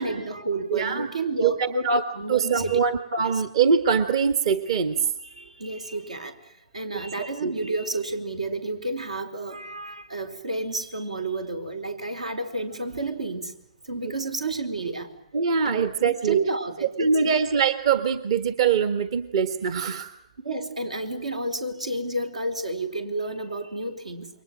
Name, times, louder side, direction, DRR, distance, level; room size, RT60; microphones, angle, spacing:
voice 1, 0.0-1.9 2.1-2.8 3.2-3.4 5.2-13.5 13.8-15.1 15.6-17.4 20.4-24.3, right 2 dB, 90° right, 7 dB, 4.4 m, -31 dB
voice 2, 0.7-1.1 1.4-5.0 7.2-7.5 14.0-14.1 15.3-16.4 17.0-20.1, right 6 dB, 55° right, 9 dB, 1.6 m, -23 dB
29.0 x 23.5 x 7.5 m, 0.78 s
figure-of-eight pair, 130°, 4 cm